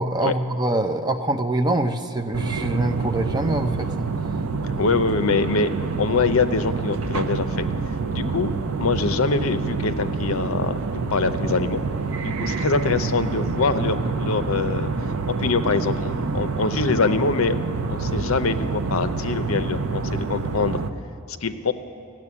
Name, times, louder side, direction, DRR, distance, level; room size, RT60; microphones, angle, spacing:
voice 1, 0.0-4.1, right 2 dB, 20° right, 6 dB, 0.6 m, -24 dB
sound 1, 2.3-20.9, right 4 dB, 70° right, 0.6 m, -27 dB
voice 2, 4.6-5.7 6.0-7.6 8.1-8.5 8.8-10.7 11.1-11.8 12.2-14.9 15.4-17.6 17.9-20.8 21.4-21.7, left 4 dB, 65° left, 10 dB, 0.6 m, -24 dB
14.0 x 7.5 x 9.7 m, 2.7 s
head